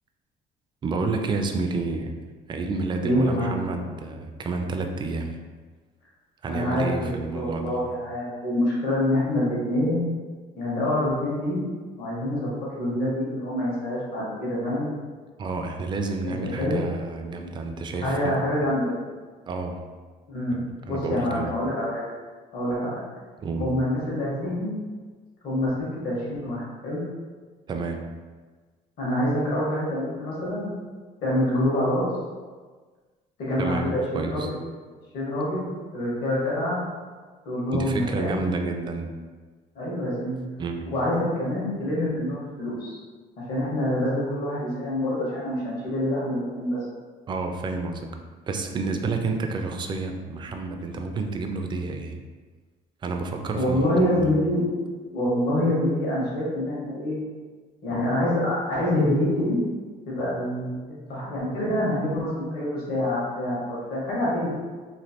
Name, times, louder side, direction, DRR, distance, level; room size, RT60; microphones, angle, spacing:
voice 1, 0.8-2.1 2.5-5.4 6.4-7.8 15.4-18.4 19.5-19.8 20.5-21.5 23.4-23.7 27.7-28.0 33.6-34.5 37.7-39.1 40.6-40.9 47.3-48.1 48.5-52.2 53.0-54.3, right 3 dB, 30° right, 4 dB, 0.3 m, -30 dB
voice 2, 3.0-3.7 6.5-10.1 10.6-11.6 12.0-14.9 16.2-16.8 18.0-18.9 20.3-22.0 22.5-23.0 23.6-24.7 25.4-27.0 29.0-30.6 31.2-32.0 33.4-34.5 35.1-36.8 37.4-38.4 39.7-40.4 40.8-43.0 43.5-46.8 53.6-57.2 57.8-59.6 60.1-64.5, left 1 dB, 65° left, -7 dB, 1.4 m, -26 dB
3.1 x 2.4 x 2.8 m, 1.4 s
cardioid pair, 110°, 17 cm